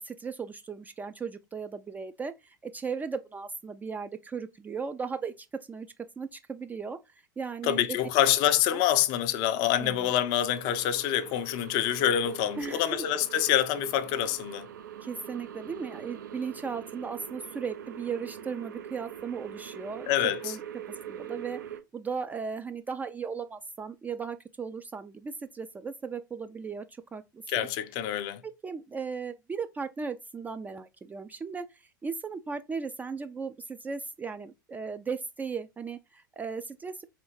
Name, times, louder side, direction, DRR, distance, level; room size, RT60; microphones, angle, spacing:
voice 1, 0.0-5.9 6.2-8.0 8.7-8.8 9.8-10.1 12.6-13.0 15.0-20.6 21.1-21.6 21.9-27.7 28.4-37.0, right 5 dB, 15° right, 0.3 m, -37 dB
voice 2, 7.6-14.7 20.1-20.6 27.5-28.4, left 11 dB, 45° left, 0.4 m, -26 dB
sound 1, 10.5-21.8, right 9 dB, 70° right, 0.5 m, -43 dB
4.4 x 3.3 x 3.2 m
figure-of-eight pair, 80°, 11 cm